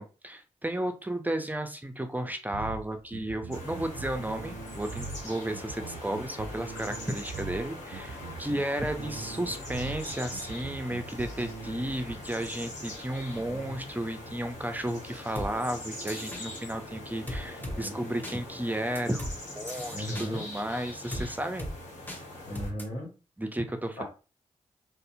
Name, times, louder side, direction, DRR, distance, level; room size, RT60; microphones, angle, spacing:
voice 1, 0.0-19.3 19.5-21.7 23.4-24.0, right 1 dB, 15° right, 7 dB, 0.5 m, -33 dB
sound 1, 2.5-12.1, right 4 dB, 90° right, 0.4 m, -41 dB
sound 2, 3.5-22.7, left 1 dB, 65° left, 1.1 m, -42 dB
voice 2, 13.3-13.7 17.6-17.9 19.9-20.5 21.2-21.3 22.4-23.1 24.0-24.1, equal, 90° left, -2 dB, 1.0 m, -38 dB
sound 3, 15.4-15.5 16.1-16.4 17.3-17.8 18.2-18.4 19.0-19.3 19.7-20.3 21.1-21.3 21.6-21.7 22.1-22.2 22.6-22.8, left 1 dB, 15° left, 0.9 m, -36 dB
2.6 x 2.1 x 2.5 m, 0.33 s
supercardioid pair, 40°, 13 cm